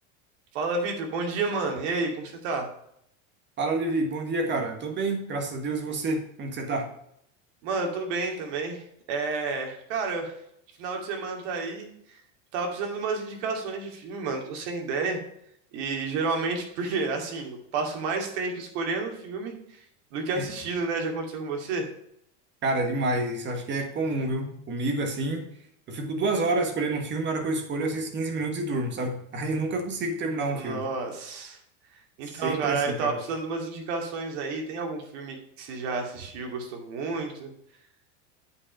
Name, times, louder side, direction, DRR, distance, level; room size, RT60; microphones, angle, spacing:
voice 1, 0.5-2.7 7.6-10.3 10.8-11.9 12.5-15.2 15.7-19.5 20.1-21.9 30.5-31.6 32.2-37.5, right 4 dB, 65° right, 2 dB, 2.5 m, -30 dB
voice 2, 3.6-6.9 20.4-20.5 22.6-25.5 25.9-30.9 32.2-33.2, right 2 dB, 30° right, 5 dB, 1.6 m, -28 dB
8.4 x 5.1 x 5.5 m, 0.73 s
supercardioid pair, 145°, 37 cm